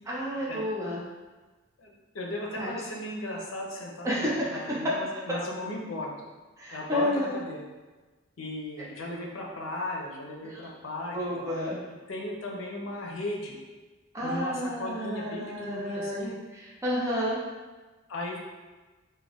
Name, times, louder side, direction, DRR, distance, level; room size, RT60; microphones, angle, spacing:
voice 1, 0.1-1.0 2.6-2.7 4.0-4.6 6.6-7.3 10.4-10.7 11.1-11.8 14.1-16.3 16.8-17.4, equal, 15° right, -7 dB, 0.4 m, -30 dB
voice 2, 1.8-6.1 6.7-7.6 8.4-11.5 12.1-13.6 14.2-16.3 18.1-18.4, left 1 dB, 80° left, -1 dB, 0.5 m, -36 dB
2.4 x 2.2 x 3.3 m, 1.2 s
head